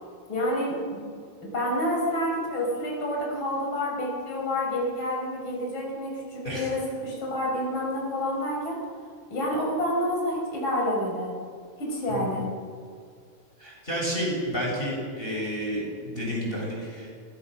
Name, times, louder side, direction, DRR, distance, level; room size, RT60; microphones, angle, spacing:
voice 1, 0.3-0.8 1.4-8.8 9.3-11.3 11.8-12.5, left 1 dB, 30° left, -2 dB, 6.1 m, -28 dB
voice 2, 13.6-17.2, equal, 15° left, -3 dB, 6.5 m, -30 dB
29.0 x 19.5 x 6.4 m, 2.1 s
omnidirectional pair, 4.2 m